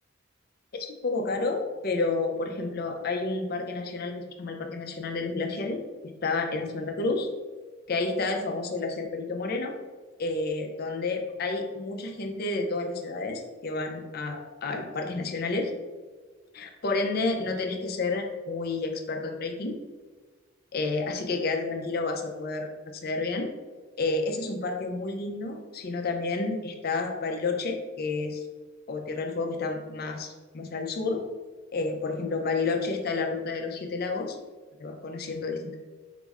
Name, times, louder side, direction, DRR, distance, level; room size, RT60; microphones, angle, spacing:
voice 1, 0.8-5.8 6.2-7.3 7.9-9.8 10.2-15.7 16.5-19.8 20.7-23.5 24.0-28.4 28.9-31.3 31.7-34.4 34.8-35.8, left 3 dB, 50° left, 3 dB, 0.5 m, -30 dB
4.9 x 2.0 x 3.4 m, 1.3 s
head